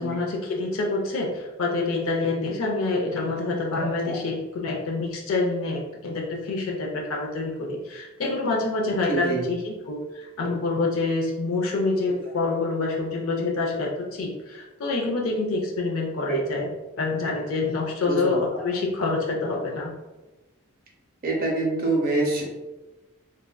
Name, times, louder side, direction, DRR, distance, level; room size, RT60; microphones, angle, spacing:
voice 1, 0.0-16.7 17.0-19.9, left 3 dB, 70° left, -1 dB, 0.4 m, -27 dB
voice 2, 9.1-9.5 16.3-16.4 18.1-18.2 21.2-22.4, right 3 dB, 40° right, -2 dB, 0.7 m, -25 dB
3.2 x 2.5 x 2.2 m, 1.1 s
head